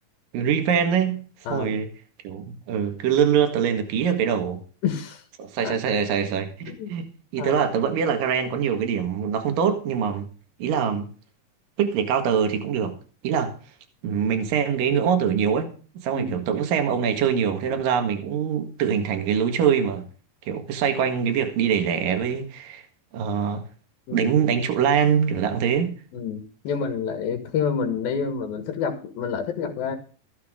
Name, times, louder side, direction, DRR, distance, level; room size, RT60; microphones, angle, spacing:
voice 1, 0.3-1.2 1.5-1.9 2.2-4.6 5.4-7.1 7.3-10.3 10.6-11.1 11.8-12.9 13.2-13.5 14.0-15.7 16.0-20.0 20.5-22.8 23.1-23.6 24.1-25.9, right 7 dB, 70° right, 3.4 m, -23 dB
voice 2, 4.8-5.2 5.6-5.7 6.6-6.9 7.4-7.7 16.1-16.4 24.1-24.3 26.1-30.0, left 6 dB, 90° left, 3.4 m, -28 dB
14.5 x 11.5 x 3.8 m
omnidirectional pair, 4.1 m